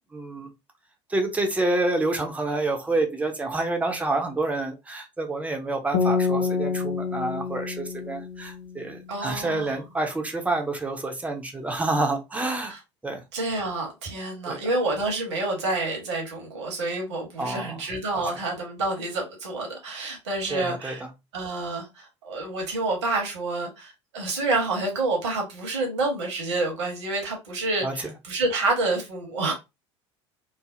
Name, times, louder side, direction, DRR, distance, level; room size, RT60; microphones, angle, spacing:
voice 1, 0.1-0.5 1.1-12.7 13.0-13.2 14.5-14.6 17.4-17.8 18.1-18.2 20.5-20.9 27.8-28.1, right 2 dB, 10° right, 0.7 m, -28 dB
sound 1, 5.9-9.1, left 5 dB, 75° left, 0.7 m, -27 dB
voice 2, 9.1-9.7 12.7-12.8 13.3-21.0 21.3-29.5, right 2 dB, 70° right, 1.1 m, -28 dB
3.3 x 2.0 x 2.5 m
figure-of-eight pair, 70°, 15 cm